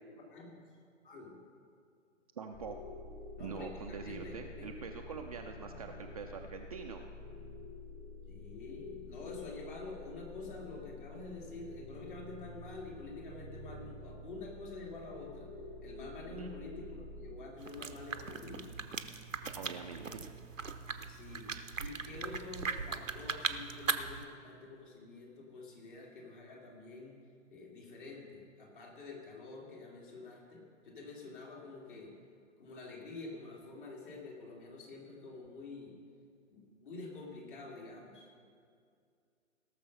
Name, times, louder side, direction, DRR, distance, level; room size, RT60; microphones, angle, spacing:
voice 1, 0.1-0.6 1.0-1.4 3.4-4.7 8.3-15.5 15.8-18.7 21.0-27.2 27.5-32.1 32.6-35.9 36.5-38.3, left 3 dB, 40° left, -2 dB, 2.8 m, -48 dB
voice 2, 2.4-2.8 3.4-7.0 16.4-16.5 19.5-20.2, right 6 dB, 30° right, 3 dB, 0.5 m, -44 dB
sound 1, 2.5-17.3, left 2 dB, 20° left, 2.0 m, -48 dB
sound 2, 17.6-24.3, right 5 dB, 80° right, 0.8 m, -39 dB
17.5 x 6.7 x 5.4 m, 2.2 s
figure-of-eight pair, 125°, 38 cm